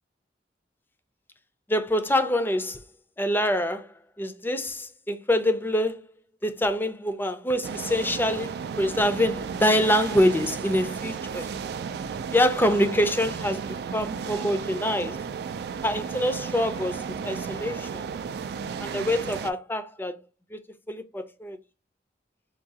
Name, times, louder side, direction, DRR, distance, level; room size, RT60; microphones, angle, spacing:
voice 1, 1.7-2.8 3.2-6.1 6.4-11.5 12.3-15.2 15.8-18.0 18.8-20.2 20.5-20.6 20.9-21.6, left 1 dB, 10° left, 0.5 m, -25 dB
sound 1, 7.6-19.5, right 6 dB, 65° right, 0.3 m, -34 dB
4.7 x 2.3 x 2.7 m
head